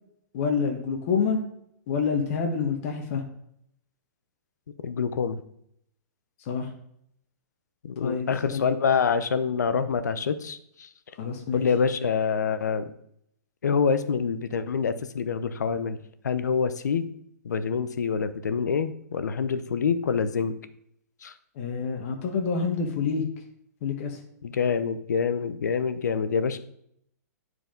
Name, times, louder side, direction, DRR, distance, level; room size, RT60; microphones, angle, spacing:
voice 1, 0.3-1.4 1.9-3.2 6.5-6.7 8.0-8.7 11.2-11.7 21.6-23.2 23.8-24.2, left 5 dB, 50° left, 2 dB, 1.5 m, -27 dB
voice 2, 4.8-5.4 7.8-10.9 11.5-12.9 13.6-16.0 16.2-17.1 17.4-20.5 21.2-21.3 24.4-26.6, left 6 dB, 80° left, 12 dB, 0.7 m, -26 dB
10.0 x 4.8 x 3.8 m, 0.72 s
hypercardioid pair, 130°, 9 cm